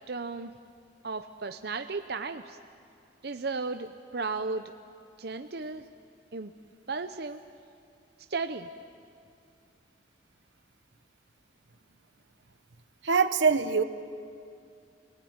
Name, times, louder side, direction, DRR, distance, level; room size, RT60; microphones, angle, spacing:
voice 1, 0.1-0.5 1.0-2.6 3.2-4.6 5.2-5.9 6.3-6.5 6.9-7.4 8.3-8.7, right 4 dB, 60° right, 7 dB, 0.8 m, -34 dB
voice 2, 13.0-13.8, right 5 dB, 85° right, 10 dB, 1.1 m, -23 dB
29.0 x 19.5 x 9.6 m, 2.4 s
head